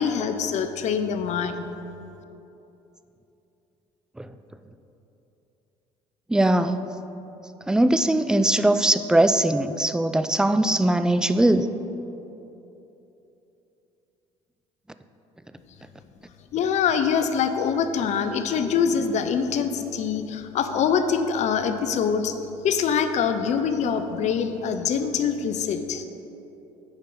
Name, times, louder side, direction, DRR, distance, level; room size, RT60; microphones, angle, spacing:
voice 1, 0.0-1.6 16.5-22.4 22.6-26.0, left 7 dB, 55° left, 9 dB, 0.7 m, -24 dB
voice 2, 6.3-6.8 7.7-11.7, right 1 dB, 5° right, 10 dB, 0.4 m, -20 dB
8.0 x 5.2 x 6.0 m, 3.0 s
supercardioid pair, 80°, 14 cm